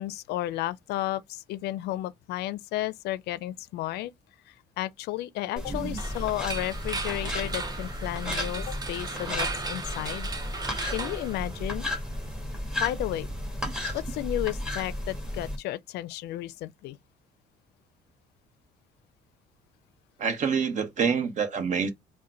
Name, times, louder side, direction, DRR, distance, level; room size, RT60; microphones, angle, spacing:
voice 1, 0.0-4.1 4.5-10.3 10.9-11.8 12.8-13.3 13.9-17.0, left 15 dB, 75° left, 0.4 m, -33 dB
sound 1, 5.6-15.6, left 1 dB, 5° right, 1.5 m, -34 dB
sound 2, 6.0-12.0, right 3 dB, 25° right, 0.6 m, -36 dB
voice 2, 20.2-21.9, right 6 dB, 45° right, 0.9 m, -27 dB
3.7 x 2.2 x 4.3 m
cardioid pair, 110°, 17 cm